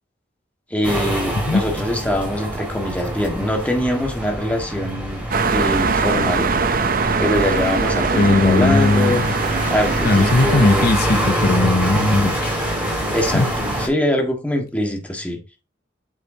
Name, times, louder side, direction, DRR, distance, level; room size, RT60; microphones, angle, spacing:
voice 1, 0.7-5.2 5.5-6.5 7.2-9.2 9.7-10.9 13.1-15.4, left 1 dB, 10° left, 1.7 m, -23 dB
sound 1, 0.8-13.9, right 1 dB, 10° right, 3.9 m, -25 dB
sound 2, 5.3-10.8, right 4 dB, 55° right, 0.7 m, -22 dB
voice 2, 8.1-9.3 10.0-12.6 13.3-13.5, left 2 dB, 60° left, 0.7 m, -18 dB
8.2 x 6.5 x 2.8 m
head